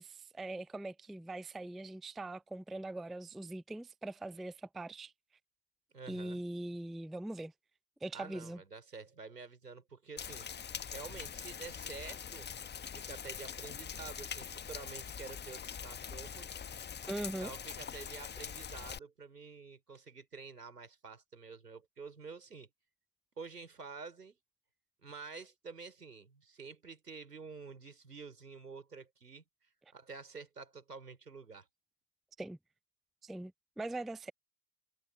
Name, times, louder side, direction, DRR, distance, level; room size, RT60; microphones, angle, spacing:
voice 1, 0.0-5.1 6.1-7.5 8.0-8.6 17.1-17.5 32.4-32.6 33.2-33.5 33.8-34.3, right 2 dB, ahead, 0.4 m, -41 dB
voice 2, 5.9-6.4 8.1-10.5 10.9-12.5 12.9-16.6 17.4-22.7 23.4-24.4 25.0-29.4 29.9-31.7, right 4 dB, 80° right, 5.0 m, -49 dB
Rain, 10.2-19.0, left 7 dB, 20° left, 1.4 m, -43 dB
figure-of-eight pair, 65°, 46 cm